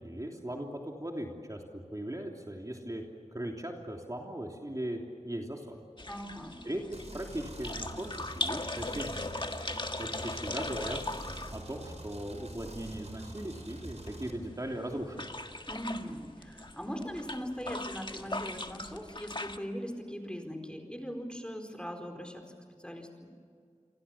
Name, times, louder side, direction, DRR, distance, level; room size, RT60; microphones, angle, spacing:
voice 1, 0.0-3.0 3.3-5.8 6.6-9.2 10.0-11.0 11.5-15.4, right 1 dB, 30° right, 1 dB, 3.2 m, -38 dB
sound 1, 6.0-19.6, left 2 dB, 40° left, 1.7 m, -40 dB
voice 2, 6.1-6.6 15.7-23.3, equal, 10° left, 5 dB, 4.5 m, -40 dB
sound 2, 6.9-14.3, right 1 dB, 65° right, 4.2 m, -46 dB
29.5 x 24.5 x 7.3 m, 2.2 s
wide cardioid pair, 50°, 12 cm